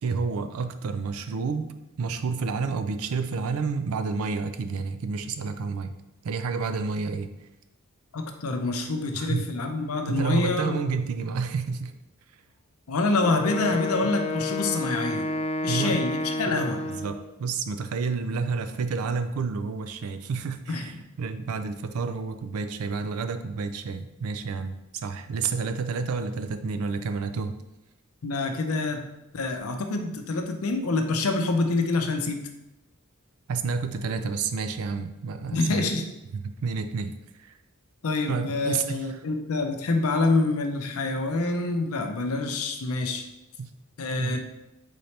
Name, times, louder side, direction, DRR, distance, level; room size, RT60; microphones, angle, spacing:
voice 1, 0.0-5.9 6.2-7.3 9.1-9.5 10.1-11.9 14.0-14.1 15.7-16.0 16.9-27.6 33.5-35.8 36.3-37.1 37.4-37.6 38.3-39.2 41.3-41.4 43.6-43.7 44.2-44.4, right 4 dB, 80° right, 9 dB, 0.4 m, -30 dB
voice 2, 8.1-10.8 12.9-15.3 15.6-16.9 20.7-20.8 28.2-29.1 29.3-32.4 35.5-36.0 38.0-43.2 44.0-44.4, left 3 dB, 90° left, 5 dB, 0.6 m, -26 dB
Wind instrument woodwind instrument, 13.2-17.2, left 2 dB, 30° left, 0.4 m, -30 dB
4.2 x 3.9 x 3.2 m, 0.92 s
head